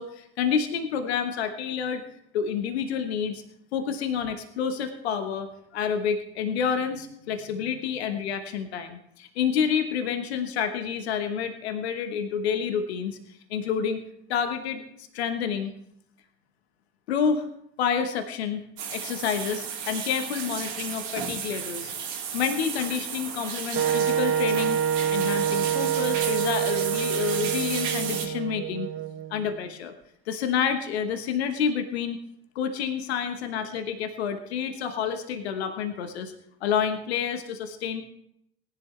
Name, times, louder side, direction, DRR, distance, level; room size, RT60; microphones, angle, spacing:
voice 1, 0.0-2.0 2.3-3.4 3.7-14.0 14.3-14.8 15.1-15.7 17.1-17.5 17.8-18.6 18.9-21.9 22.3-24.8 25.1-28.9 29.3-29.9 30.3-32.2 32.5-36.3 36.6-38.0, left 7 dB, 85° left, 7 dB, 1.2 m, -29 dB
sound 1, 18.8-28.3, right 7 dB, 70° right, 2.6 m, -33 dB
Wind instrument woodwind instrument, 23.8-29.6, right 9 dB, 40° right, 1.1 m, -27 dB
18.5 x 11.0 x 3.2 m, 0.73 s
hypercardioid pair, 60°, 31 cm